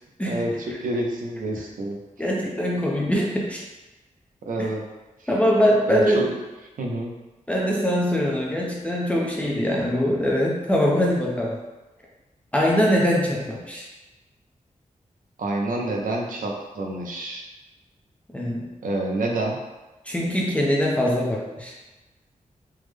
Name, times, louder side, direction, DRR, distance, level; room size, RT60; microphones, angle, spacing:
voice 1, 0.2-2.0 4.5-4.8 5.9-6.3 6.8-7.1 15.4-17.4 18.8-19.6, right 2 dB, 90° right, 0 dB, 0.5 m, -28 dB
voice 2, 2.2-3.6 4.6-4.7 5.3-6.3 7.5-11.6 12.5-13.9 18.3-18.7 20.1-21.7, equal, 10° left, -3 dB, 0.5 m, -22 dB
3.5 x 2.0 x 3.2 m, 1.1 s
wide cardioid pair, 115°, 14 cm